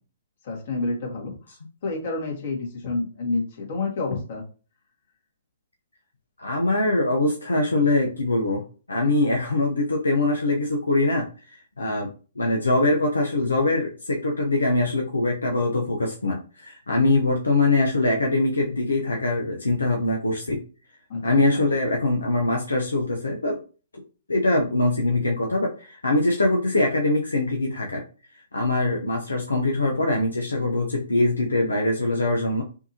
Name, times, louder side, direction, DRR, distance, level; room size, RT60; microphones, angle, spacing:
voice 1, 0.4-4.4 21.1-21.6, left 3 dB, 55° left, 0 dB, 2.0 m, -29 dB
voice 2, 6.4-8.6 8.9-11.3 11.8-12.1 12.4-20.6 21.2-23.6 24.3-28.0 28.5-32.6, left 2 dB, 90° left, 1 dB, 0.8 m, -23 dB
5.8 x 2.9 x 2.8 m, 0.36 s
hypercardioid pair, 130°, 0 cm